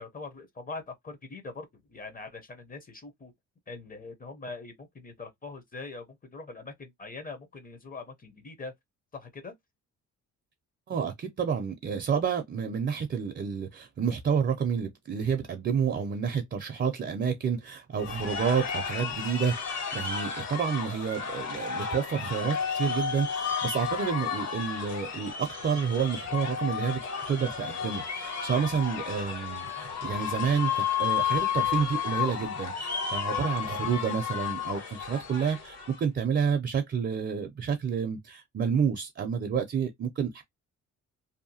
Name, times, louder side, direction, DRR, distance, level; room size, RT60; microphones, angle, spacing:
voice 1, 0.0-3.3 3.7-8.7 9.1-9.5, left 3 dB, 30° left, 0.7 m, -42 dB
voice 2, 10.9-19.5 19.9-27.0 27.3-40.4, right 7 dB, 35° right, 0.5 m, -29 dB
sound 1, 18.0-36.0, left 7 dB, 60° left, 1.5 m, -32 dB
2.8 x 2.2 x 2.7 m
cardioid pair, 90°, 30 cm